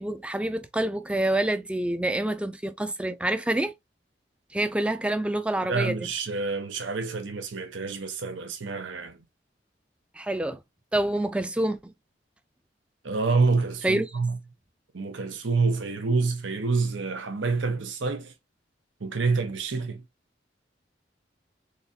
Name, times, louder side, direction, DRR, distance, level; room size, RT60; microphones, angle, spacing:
voice 1, 0.0-3.7 4.5-6.0 10.2-10.6 10.9-11.9 13.8-14.1, right 1 dB, 5° right, 0.3 m, -27 dB
voice 2, 5.6-9.2 13.0-14.4 14.9-18.3 19.0-20.0, right 4 dB, 90° right, 0.9 m, -27 dB
4.0 x 3.0 x 2.7 m
head